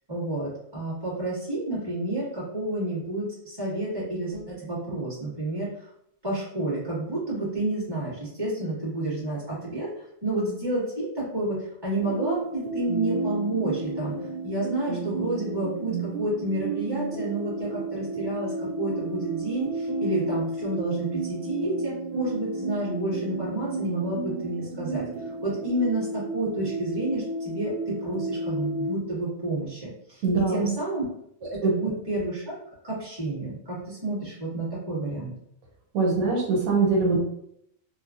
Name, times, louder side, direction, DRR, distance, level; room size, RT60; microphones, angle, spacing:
voice 1, 0.1-5.9 6.2-30.2 30.5-31.1 31.4-32.5 32.8-35.3, right 2 dB, 20° right, -10 dB, 1.5 m, -30 dB
sound 1, 12.0-29.0, right 2 dB, 60° right, 0.6 m, -32 dB
voice 2, 30.2-30.6 31.6-31.7 35.9-37.2, right 4 dB, 90° right, -1 dB, 1.2 m, -22 dB
3.1 x 2.3 x 2.4 m, 0.74 s
omnidirectional pair, 1.4 m